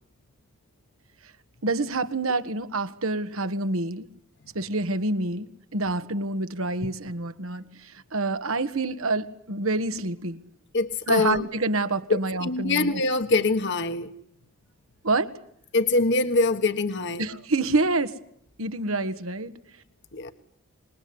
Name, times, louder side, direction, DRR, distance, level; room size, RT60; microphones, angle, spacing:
voice 1, 1.6-4.1 4.5-10.4 11.1-13.0 15.0-15.3 17.2-18.1 18.6-19.5, right 2 dB, 90° right, 10 dB, 1.7 m, -27 dB
voice 2, 10.7-11.5 12.1-14.1 15.7-17.2 20.1-20.3, left 3 dB, 60° left, 8 dB, 1.4 m, -24 dB
26.5 x 21.5 x 9.6 m, 0.70 s
head